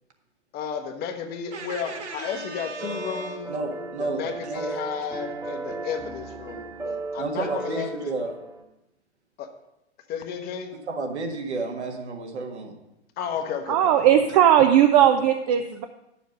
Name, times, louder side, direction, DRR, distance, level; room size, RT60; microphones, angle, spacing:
voice 1, 0.5-3.5 4.0-8.2 9.4-9.5 10.1-10.8 13.2-14.4, left 7 dB, 25° left, 6 dB, 0.9 m, -33 dB
voice 2, 1.5-4.7 7.2-8.4 10.9-12.8, right 3 dB, 70° right, 2 dB, 1.8 m, -32 dB
sound 1, 2.8-8.6, right 3 dB, 10° right, 1.1 m, -35 dB
voice 3, 13.7-15.8, right 10 dB, 35° right, 7 dB, 0.5 m, -18 dB
10.0 x 7.0 x 5.3 m, 0.90 s
figure-of-eight pair, 105°, 35 cm